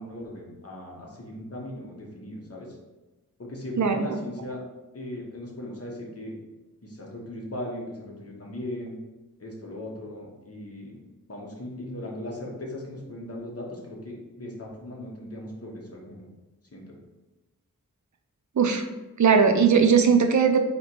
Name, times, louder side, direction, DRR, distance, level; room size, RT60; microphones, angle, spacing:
voice 1, 0.0-2.8 3.4-4.6 4.9-6.4 6.8-9.0 9.4-11.0 11.3-16.3 16.7-16.9, left 1 dB, 45° left, -2 dB, 1.1 m, -38 dB
voice 2, 3.8-4.1 18.6-18.8 19.2-20.6, right 6 dB, 60° right, 5 dB, 0.5 m, -19 dB
4.1 x 3.0 x 4.4 m, 1.1 s
wide cardioid pair, 75°, 33 cm